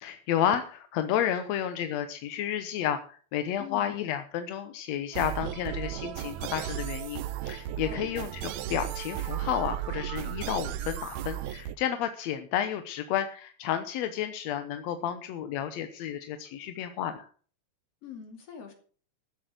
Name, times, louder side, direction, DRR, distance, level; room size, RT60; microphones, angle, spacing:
voice 1, 0.0-17.3, left 10 dB, 70° left, 9 dB, 1.9 m, -31 dB
voice 2, 3.6-3.9 7.9-8.2 18.0-18.7, left 7 dB, 50° left, 5 dB, 3.6 m, -43 dB
sound 1, 5.1-11.8, right 12 dB, 75° right, 1.9 m, -35 dB
14.0 x 7.9 x 6.5 m, 0.43 s
omnidirectional pair, 3.6 m